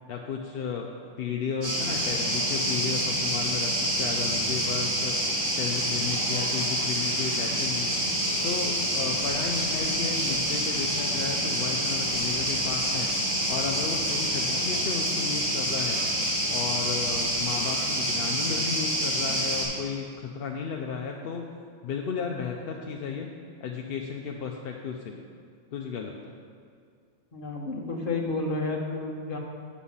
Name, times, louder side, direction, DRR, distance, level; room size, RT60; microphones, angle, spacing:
voice 1, 0.1-5.2 5.6-7.9 8.4-13.1 13.5-16.0 16.5-21.4 21.8-23.3 23.6-25.2 25.7-26.4, left 6 dB, 60° left, 1 dB, 0.7 m, -34 dB
sound 1, 1.6-19.6, equal, 85° right, 3.1 m, -27 dB
voice 2, 27.3-29.4, left 3 dB, 45° left, -1 dB, 1.3 m, -31 dB
8.6 x 6.2 x 5.5 m, 2.2 s
omnidirectional pair, 1.4 m